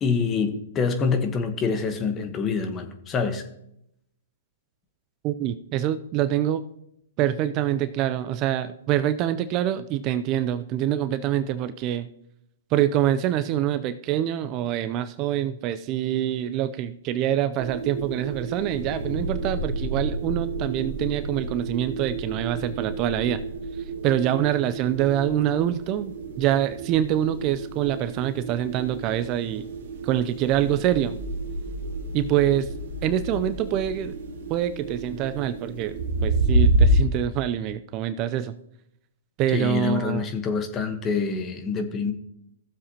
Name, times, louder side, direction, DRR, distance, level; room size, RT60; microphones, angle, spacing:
voice 1, 0.0-3.4 39.5-42.1, left 5 dB, 25° left, 1.2 m, -26 dB
voice 2, 5.2-6.6 7.2-12.1 12.7-23.4 24.0-29.7 30.0-31.2 32.1-32.7 33.0-34.1 34.5-36.0 36.2-38.5 39.4-40.2, right 11 dB, 35° right, 0.5 m, -25 dB
sound 1, 17.6-37.0, right 2 dB, 60° right, 1.4 m, -29 dB
15.5 x 7.3 x 2.9 m
hypercardioid pair, 125°, 0 cm